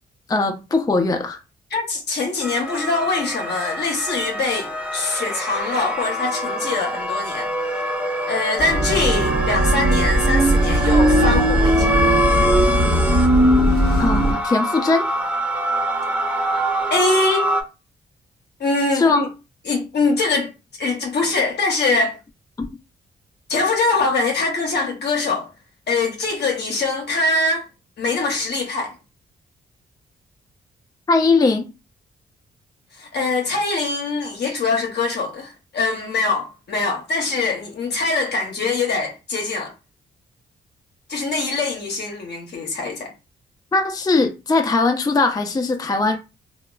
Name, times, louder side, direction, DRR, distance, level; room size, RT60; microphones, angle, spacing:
voice 1, 0.3-1.4 14.0-15.1 18.9-19.2 31.1-31.7 43.7-46.2, left 3 dB, 20° left, 0.5 m, -19 dB
voice 2, 1.7-7.5 8.3-12.0 16.9-17.5 18.6-19.3 19.7-20.5 20.8-22.2 23.5-25.5 25.9-27.7 28.0-28.9 32.9-39.7 41.1-43.1, left 3 dB, 60° left, 0.7 m, -23 dB
sound 1, 2.4-17.6, equal, 5° right, 0.8 m, -25 dB
sound 2, 8.6-14.3, right 1 dB, 55° right, 1.1 m, -18 dB
2.9 x 2.2 x 2.3 m
supercardioid pair, 50°, 20 cm